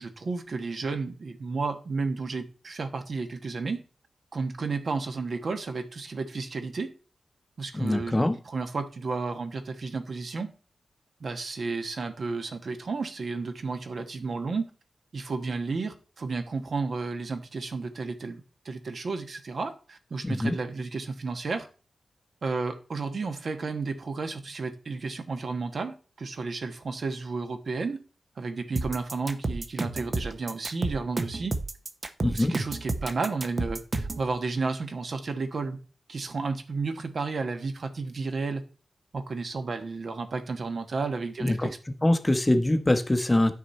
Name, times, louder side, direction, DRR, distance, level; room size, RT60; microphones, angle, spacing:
voice 1, 0.0-3.8 4.3-6.9 7.6-10.5 11.2-14.7 15.1-21.7 22.4-28.0 28.4-31.5 32.3-35.8 36.1-38.6 39.1-41.8, right 4 dB, 55° right, 1.2 m, -32 dB
voice 2, 7.7-8.4 20.2-20.5 32.2-32.5 41.4-41.7 42.0-43.5, left 1 dB, 15° left, 0.8 m, -23 dB
sound 1, 28.8-34.3, right 2 dB, 35° right, 0.7 m, -31 dB
10.5 x 6.3 x 4.2 m
wide cardioid pair, 125°, 0 cm